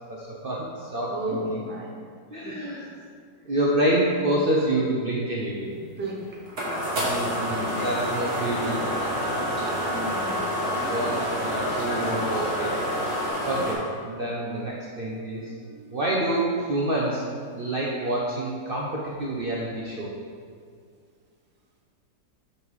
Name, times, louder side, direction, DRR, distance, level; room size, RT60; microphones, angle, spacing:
voice 1, 0.1-1.6 2.3-2.9 3.4-5.7 7.0-8.9 10.8-12.8 13.5-15.5 15.9-17.2 17.6-20.1, right 1 dB, 85° right, -4 dB, 0.4 m, -27 dB
voice 2, 1.1-2.0 2.4-2.9 5.7-6.3 6.6-7.3 9.9-10.9 13.5-13.7 14.9-16.0, right 1 dB, 15° right, -3 dB, 0.4 m, -37 dB
sound 1, 5.8-13.8, equal, 40° right, 1.7 m, -29 dB
sound 2, 7.4-13.3, equal, 10° left, 1.5 m, -33 dB
5.4 x 5.4 x 4.8 m, 2.1 s
omnidirectional pair, 2.0 m